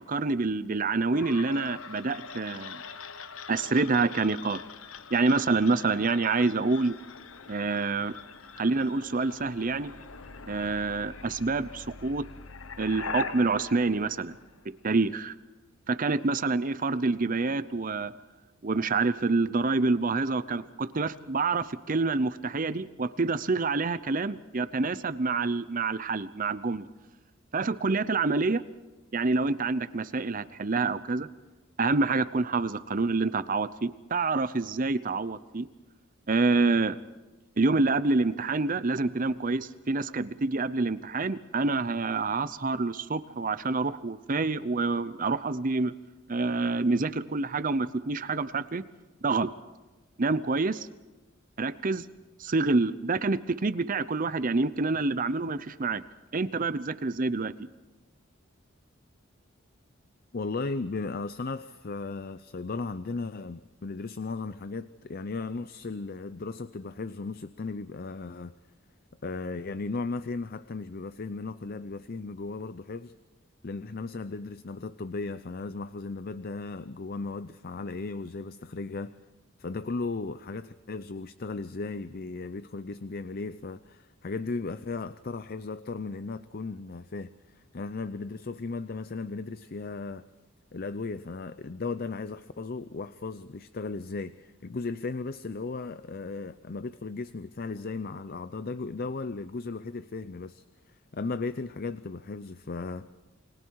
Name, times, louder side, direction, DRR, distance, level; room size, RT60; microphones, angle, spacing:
voice 1, 0.0-2.8 3.5-4.6 5.1-6.9 7.5-8.1 8.6-9.9 10.5-12.2 12.8-14.4 14.8-15.3 15.9-18.1 18.6-26.9 27.5-28.6 29.1-31.3 31.8-35.7 36.3-37.0 37.6-45.9 46.3-48.8 49.2-49.5 50.2-50.9 51.6-52.1 52.4-56.0 56.3-57.5, right 3 dB, 40° right, 14 dB, 0.7 m, -27 dB
sound 1, 1.1-15.0, left 5 dB, 85° left, 1.1 m, -43 dB
voice 2, 60.3-68.5 69.2-73.1 73.6-79.2 79.6-90.2 90.7-103.1, left 3 dB, 50° left, 13 dB, 0.6 m, -36 dB
29.5 x 21.0 x 4.7 m, 1.1 s
head